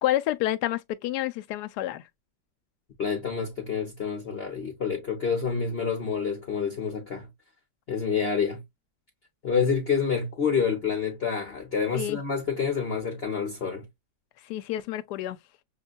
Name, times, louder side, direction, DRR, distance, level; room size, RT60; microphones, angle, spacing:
voice 1, 0.0-2.0 11.9-12.2 14.4-15.4, left 13 dB, 75° left, 1.1 m, -29 dB
voice 2, 3.0-7.3 7.9-8.6 9.4-13.8, left 6 dB, 45° left, 0.9 m, -28 dB
6.7 x 2.2 x 2.3 m
omnidirectional pair, 1.8 m